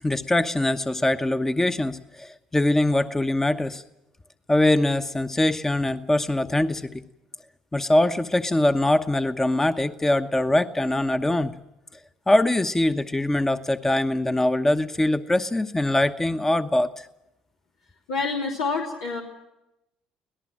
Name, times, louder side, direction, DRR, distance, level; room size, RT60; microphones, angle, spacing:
voice 1, 0.0-3.8 4.5-7.0 7.7-11.5 12.3-17.1, left 1 dB, 15° left, 9 dB, 1.0 m, -23 dB
voice 2, 18.1-19.2, left 4 dB, 90° left, -3 dB, 2.9 m, -27 dB
25.0 x 18.0 x 7.5 m, 0.89 s
hypercardioid pair, 65°, 3 cm